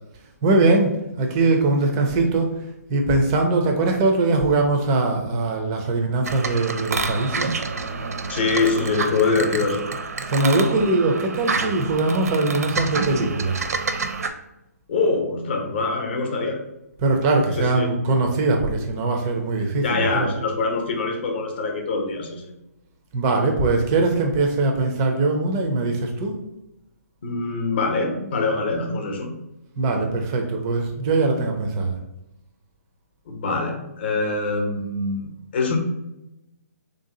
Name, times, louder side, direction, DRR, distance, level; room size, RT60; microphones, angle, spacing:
voice 1, 0.4-7.5 10.3-13.6 17.0-20.3 23.1-26.4 29.8-32.0, right 3 dB, 15° right, 3 dB, 0.4 m, -21 dB
sound 1, 6.2-14.3, right 4 dB, 70° right, 0.5 m, -28 dB
voice 2, 8.3-9.9 14.9-16.6 17.6-17.9 19.8-22.5 27.2-29.3 33.3-35.8, left 3 dB, 40° left, 3 dB, 0.7 m, -24 dB
3.5 x 2.7 x 3.8 m, 0.90 s
hypercardioid pair, 165°, 9 cm